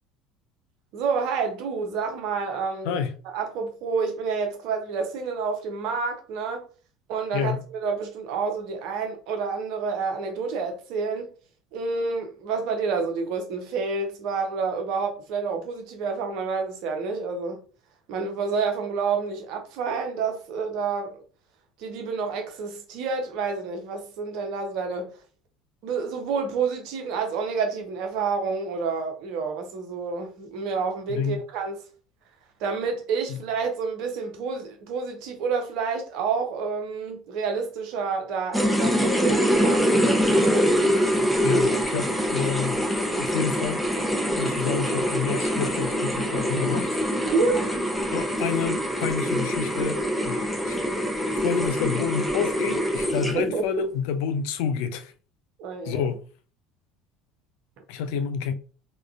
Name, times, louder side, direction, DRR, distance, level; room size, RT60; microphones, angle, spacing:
voice 1, 0.9-6.7 7.1-11.3 11.7-17.6 18.1-21.2 21.8-25.1 25.8-31.8 32.6-40.7 47.3-47.6 53.5-53.6 55.6-56.1, right 5 dB, 55° right, 0.7 m, -29 dB
voice 2, 2.8-3.2 7.3-7.6 31.1-31.5 33.3-33.4 41.4-42.8 43.2-43.9 44.4-47.3 48.1-50.8 51.3-55.1 55.8-56.2 57.9-58.5, left 7 dB, 60° left, 0.3 m, -29 dB
sound 1, 38.5-53.6, equal, ahead, 0.6 m, -24 dB
3.6 x 2.2 x 2.4 m
figure-of-eight pair, 65°, 0 cm